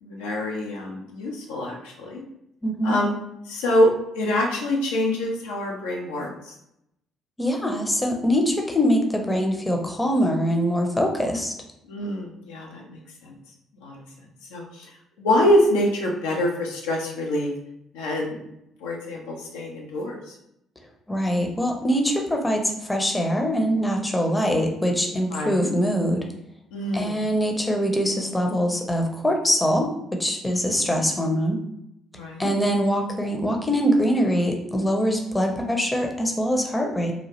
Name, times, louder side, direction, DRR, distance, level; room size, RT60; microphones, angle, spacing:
voice 1, 0.0-2.2 2.8-3.1 3.5-6.5 11.9-13.3 13.8-14.0 14.5-14.9 15.2-17.5 17.9-18.4 18.8-20.3 25.3-25.7 26.7-27.3 30.4-30.9 32.1-32.5, left 1 dB, 75° left, -1 dB, 0.5 m, -25 dB
voice 2, 2.6-3.0 7.4-11.5 21.1-26.2 26.9-31.6 32.4-37.1, equal, 15° left, 2 dB, 0.6 m, -23 dB
2.9 x 2.4 x 2.9 m, 0.80 s
figure-of-eight pair, 50°, 0 cm